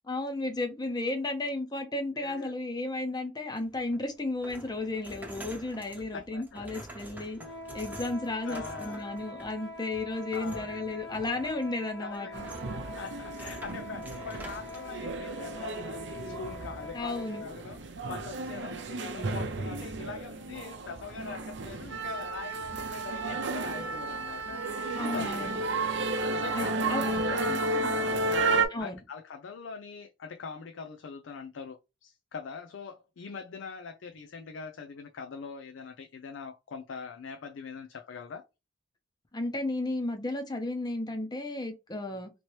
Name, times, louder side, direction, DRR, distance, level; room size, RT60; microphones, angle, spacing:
voice 1, 0.1-7.4 7.7-12.4 16.9-17.4 24.9-25.6 26.5-27.0 27.5-27.9 28.7-29.0 39.3-42.3, left 2 dB, 20° left, 0.6 m, -33 dB
voice 2, 2.2-2.6 6.1-6.7 7.2-7.5 8.4-9.1 10.3-10.8 12.0-12.4 13.0-25.6 26.0-38.5, left 5 dB, 80° left, 0.4 m, -43 dB
sound 1, 3.6-14.9, right 1 dB, 10° right, 0.8 m, -47 dB
sound 2, 7.3-17.6, left 2 dB, 60° left, 1.3 m, -44 dB
sound 3, 12.3-28.7, right 3 dB, 65° right, 0.6 m, -32 dB
3.0 x 2.8 x 3.0 m
head